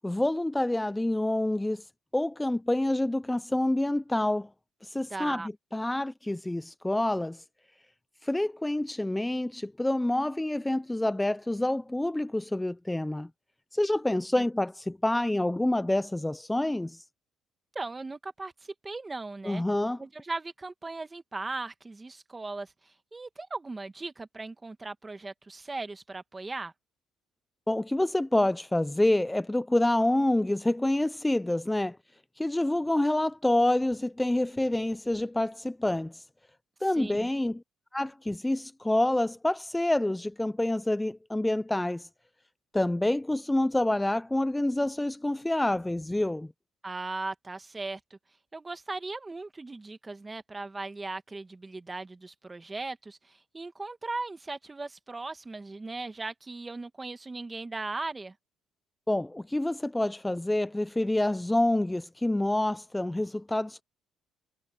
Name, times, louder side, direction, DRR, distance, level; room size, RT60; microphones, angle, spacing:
voice 1, 0.0-1.9 2.1-4.5 4.8-7.4 8.2-13.3 13.7-17.0 19.5-20.0 27.7-32.0 32.4-36.3 36.8-37.6 37.9-42.1 42.7-46.5 59.1-63.8, left 1 dB, 10° left, 0.4 m, -27 dB
voice 2, 5.1-5.5 14.3-14.4 17.7-19.6 20.0-26.7 37.0-37.3 46.8-48.2 48.5-58.3, right 3 dB, 20° right, 1.5 m, -38 dB
cardioid pair, 120°, 0 cm